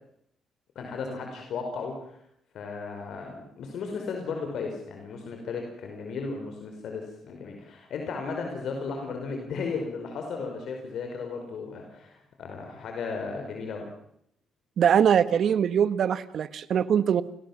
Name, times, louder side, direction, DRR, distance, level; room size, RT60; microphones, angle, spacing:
voice 1, 0.7-2.2 2.5-13.9, left 4 dB, 70° left, 3 dB, 5.0 m, -35 dB
voice 2, 14.8-17.2, right 8 dB, 60° right, 14 dB, 1.4 m, -22 dB
29.0 x 19.0 x 7.4 m, 0.74 s
cardioid pair, 90°, 0 cm